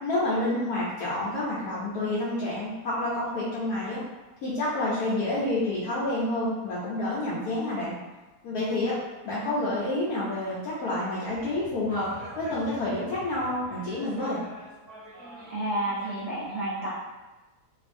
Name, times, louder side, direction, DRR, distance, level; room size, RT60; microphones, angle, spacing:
voice 1, 0.0-4.0 4.4-7.9 8.4-9.0 9.2-12.1 12.4-14.4, left 1 dB, 85° left, -9 dB, 1.1 m, -28 dB
sound 1, 11.3-16.2, equal, 25° right, 0.7 m, -46 dB
voice 2, 15.5-16.9, right 1 dB, 65° right, -10 dB, 0.4 m, -30 dB
2.6 x 2.5 x 2.5 m, 1.2 s
omnidirectional pair, 1.6 m